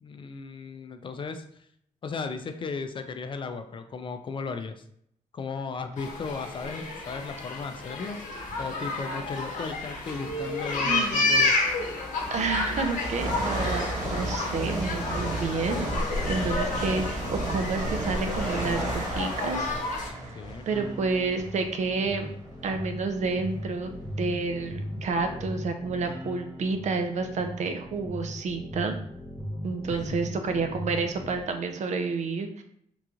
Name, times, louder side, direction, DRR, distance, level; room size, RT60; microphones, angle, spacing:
voice 1, 0.0-1.4 2.0-4.8 5.3-8.2 8.6-11.5 20.3-20.6 29.9-30.2, left 4 dB, 40° left, 7 dB, 0.4 m, -36 dB
sound 1, 6.0-20.1, left 2 dB, 80° left, 0.8 m, -31 dB
sound 2, 8.4-8.7 9.8-9.9 10.7-22.1 22.7-22.8 23.6-23.7 23.9-25.5, right 1 dB, 80° right, 1.2 m, -33 dB
voice 2, 10.8-11.3 12.3-15.9 16.3-19.6 19.9-20.3 20.7-22.3 22.6-29.0 29.6-32.6, right 4 dB, 65° right, 6 dB, 0.5 m, -30 dB
sound 3, 20.7-31.4, equal, 10° right, 0.6 m, -38 dB
3.7 x 2.9 x 2.4 m, 0.69 s
cardioid pair, 115°, 13 cm